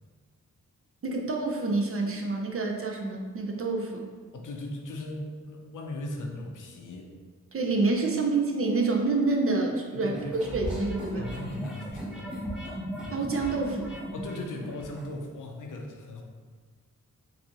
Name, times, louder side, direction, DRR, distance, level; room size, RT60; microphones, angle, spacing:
voice 1, 1.0-4.0 7.5-10.1 10.5-11.2 13.1-13.9, right 3 dB, 45° right, 1 dB, 0.6 m, -27 dB
voice 2, 4.3-7.2 9.9-10.3 11.1-12.5 14.1-16.2, left 1 dB, 75° left, 1 dB, 0.6 m, -38 dB
sound 1, 10.1-15.1, equal, 5° right, 0.7 m, -37 dB
3.9 x 2.6 x 2.9 m, 1.5 s
cardioid pair, 75°, 31 cm